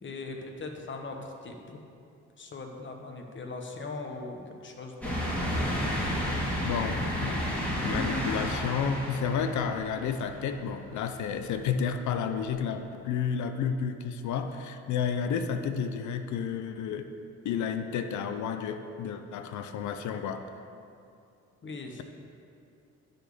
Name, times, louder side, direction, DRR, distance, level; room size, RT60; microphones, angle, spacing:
voice 1, 0.0-1.8 2.4-5.4 21.6-22.0, left 3 dB, 40° left, 3 dB, 1.2 m, -40 dB
sound 1, 5.0-10.6 11.1-11.2 12.5-12.6, equal, 5° left, 2.4 m, -31 dB
voice 2, 6.6-7.4 7.8-17.1 17.4-20.5, left 7 dB, 70° left, 8 dB, 0.7 m, -31 dB
10.5 x 4.3 x 6.7 m, 2.5 s
cardioid pair, 90°, 30 cm